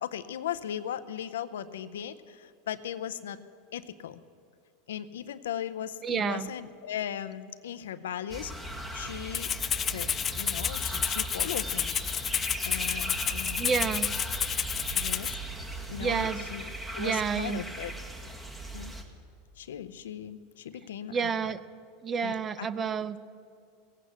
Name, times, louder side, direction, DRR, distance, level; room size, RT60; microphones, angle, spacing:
voice 1, 0.0-3.4 3.7-4.2 4.9-9.5 9.8-12.0 12.6-13.9 14.9-16.7 16.9-17.9 18.7-19.0 19.6-21.5 22.2-22.9, left 10 dB, 90° left, 12 dB, 0.6 m, -38 dB
voice 2, 6.0-6.5 13.6-14.1 16.0-16.4 17.0-17.6 21.1-21.6 22.0-23.2, right 6 dB, 25° right, 15 dB, 0.6 m, -29 dB
sound 1, 8.3-19.0, right 1 dB, 10° right, 1.6 m, -38 dB
Rattle (instrument), 9.3-15.3, left 8 dB, 30° left, 0.3 m, -30 dB
17.5 x 8.4 x 8.1 m, 2.3 s
supercardioid pair, 115°, 0 cm